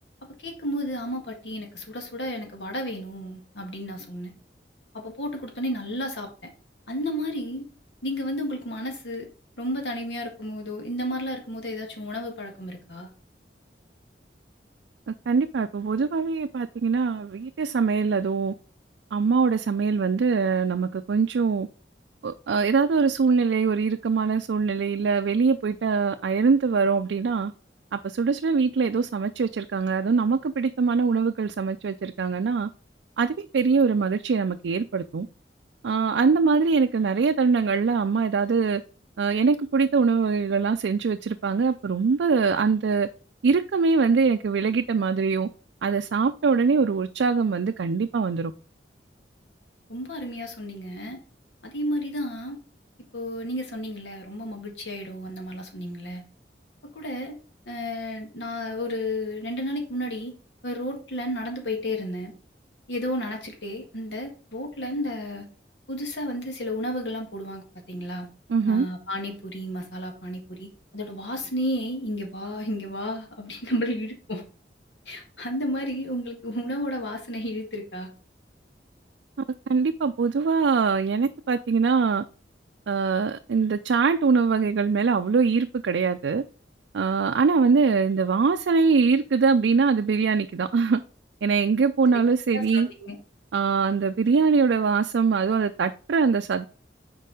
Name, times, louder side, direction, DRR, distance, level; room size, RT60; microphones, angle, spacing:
voice 1, 0.4-4.3 4.9-6.3 6.9-7.6 8.0-9.3 9.6-13.1 49.9-51.2 51.6-52.6 53.1-56.2 57.0-57.4 57.7-60.3 60.6-62.3 62.9-65.5 65.9-68.3 68.7-74.4 75.1-78.1 92.5-93.2, equal, 90° left, 1.8 m, -32 dB
voice 2, 15.3-18.5 19.1-21.7 22.2-27.5 27.9-32.7 33.2-35.3 35.8-38.8 39.2-43.1 43.4-45.5 45.8-48.5 68.5-68.9 79.7-82.2 82.9-86.4 86.9-91.0 91.4-92.9 93.5-96.7, right 5 dB, 85° right, 0.4 m, -23 dB
6.7 x 4.7 x 4.8 m
head